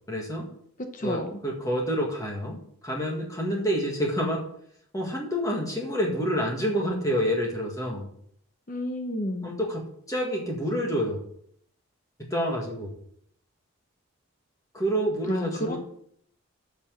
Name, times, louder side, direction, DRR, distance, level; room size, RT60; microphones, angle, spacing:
voice 1, 0.1-0.5 1.0-2.6 2.8-4.5 4.9-8.1 9.4-11.2 12.2-12.9 14.7-15.8, equal, 15° left, -1 dB, 1.8 m, -28 dB
voice 2, 0.9-1.4 8.7-9.5 15.3-15.8, left 1 dB, 35° left, 5 dB, 0.9 m, -31 dB
9.8 x 6.0 x 6.8 m, 0.66 s
head